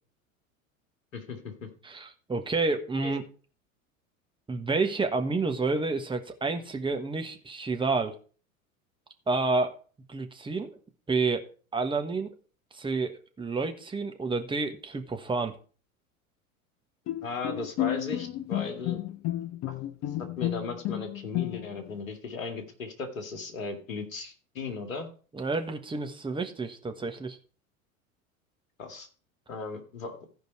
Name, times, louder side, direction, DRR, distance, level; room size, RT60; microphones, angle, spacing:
voice 1, 1.1-1.7 3.0-3.1 17.2-19.0 19.7-19.8 20.2-25.1 28.8-29.1 29.5-30.2, left 4 dB, 70° left, 5 dB, 2.2 m, -37 dB
voice 2, 1.8-3.2 4.5-8.1 9.3-9.8 10.1-10.7 11.1-11.4 11.7-12.3 12.7-15.6 25.3-27.4, right 3 dB, 10° right, 5 dB, 1.3 m, -29 dB
Bowed string instrument, 17.1-21.9, left 14 dB, 35° left, 0.7 m, -32 dB
15.0 x 5.1 x 4.6 m, 0.39 s
figure-of-eight pair, 85°, 41 cm